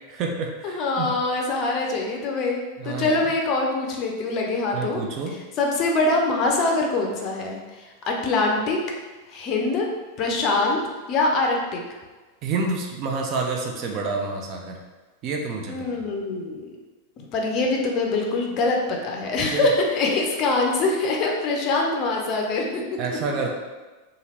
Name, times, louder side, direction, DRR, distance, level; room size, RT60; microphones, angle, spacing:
voice 1, 0.1-1.1 2.8-3.2 4.7-5.4 12.4-14.8 15.2-15.7 19.5-19.7 23.0-23.5, right 4 dB, 40° right, 1 dB, 0.4 m, -28 dB
voice 2, 0.6-5.0 5.6-8.8 9.3-9.9 10.2-10.8 11.1-11.8 15.7-16.8 17.2-22.8, left 3 dB, 35° left, 0 dB, 0.5 m, -24 dB
2.7 x 2.5 x 3.0 m, 1.2 s
figure-of-eight pair, 90°, 0 cm